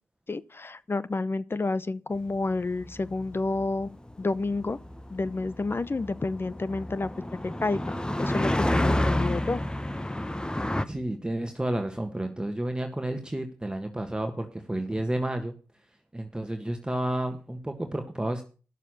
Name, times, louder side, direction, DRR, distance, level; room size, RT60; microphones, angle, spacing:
voice 1, 0.3-3.9 4.2-4.8 5.1-7.1 7.4-7.8 8.2-9.6, left 3 dB, 35° left, 0.7 m, -29 dB
sound 1, 2.4-10.8, left 1 dB, 10° left, 1.0 m, -30 dB
voice 2, 10.9-15.6 16.1-18.4, right 1 dB, 10° right, 1.6 m, -31 dB
11.0 x 6.8 x 6.3 m
supercardioid pair, 45°, 7 cm